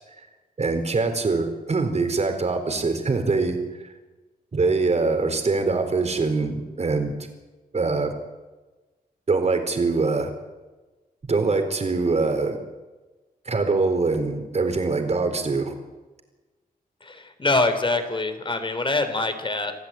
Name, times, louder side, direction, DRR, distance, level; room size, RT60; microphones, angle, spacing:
voice 1, 0.6-3.6 4.5-7.1 7.7-8.1 9.3-10.3 11.3-12.6 13.5-15.7, right 3 dB, 45° right, 6 dB, 4.1 m, -23 dB
voice 2, 17.0-19.7, left 2 dB, 30° left, 9 dB, 3.4 m, -24 dB
26.5 x 15.5 x 9.0 m, 1.2 s
wide cardioid pair, 105°, 16 cm